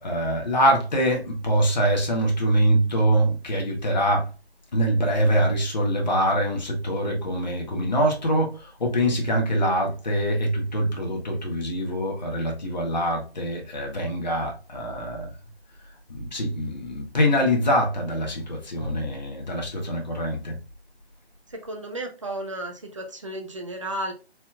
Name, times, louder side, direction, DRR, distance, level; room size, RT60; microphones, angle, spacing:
voice 1, 0.0-4.3 4.7-15.3 16.1-20.6, equal, 40° left, 1.4 m, -24 dB
voice 2, 21.5-24.1, right 1 dB, 30° right, 0.8 m, -33 dB
4.5 x 4.2 x 2.4 m
figure-of-eight pair, 165°, 32 cm